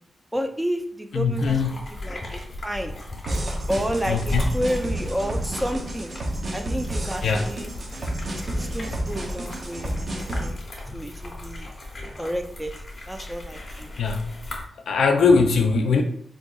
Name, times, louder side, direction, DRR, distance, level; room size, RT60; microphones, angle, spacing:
voice 1, 0.3-3.0 3.7-6.1 6.5-7.7 8.5-10.6 10.9-11.7 12.2-12.7 13.1-13.9, equal, 5° right, 5 dB, 0.3 m, -30 dB
voice 2, 1.1-1.7 4.1-4.4 7.2-7.5 14.0-14.3 14.9-16.0, left 4 dB, 85° left, 5 dB, 0.4 m, -20 dB
sound 1, 1.4-14.6, left 1 dB, 35° left, 0.8 m, -36 dB
sound 2, 3.2-10.5, right 1 dB, 40° right, 0.6 m, -30 dB
4.2 x 2.6 x 2.3 m, 0.66 s
wide cardioid pair, 155°, 0 cm